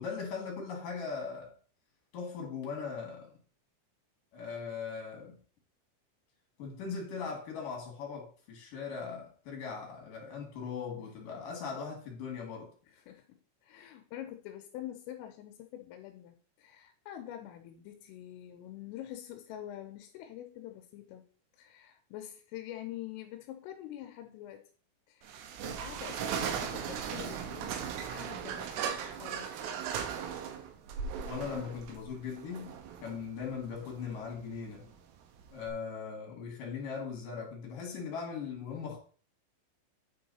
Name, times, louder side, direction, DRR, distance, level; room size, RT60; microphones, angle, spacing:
voice 1, 0.0-1.5 2.1-3.3 4.3-5.4 6.6-12.7 31.2-32.7 33.0-34.9 35.5-39.0, left 5 dB, 50° left, 3.3 m, -39 dB
voice 2, 12.9-21.3 21.6-24.7 25.1-29.7, left 12 dB, 85° left, 3.3 m, -46 dB
sound 1, 25.2-35.7, right 8 dB, 80° right, 3.6 m, -38 dB
9.9 x 4.7 x 4.2 m
omnidirectional pair, 5.8 m